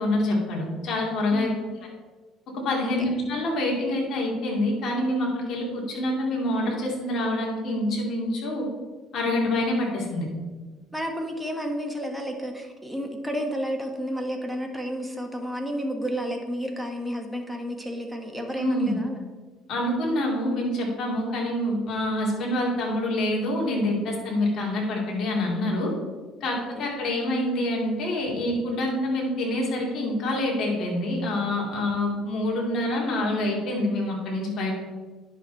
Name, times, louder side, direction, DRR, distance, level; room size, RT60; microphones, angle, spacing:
voice 1, 0.0-1.5 2.5-8.7 9.1-10.3 18.6-19.0 19.7-25.9 26.4-34.7, left 1 dB, 55° left, -2 dB, 2.6 m, -26 dB
voice 2, 1.3-1.6 2.8-2.9 10.9-19.2 26.5-26.9, equal, 5° right, 2 dB, 1.4 m, -31 dB
10.0 x 6.0 x 4.1 m, 1.3 s
cardioid pair, 110°, 0 cm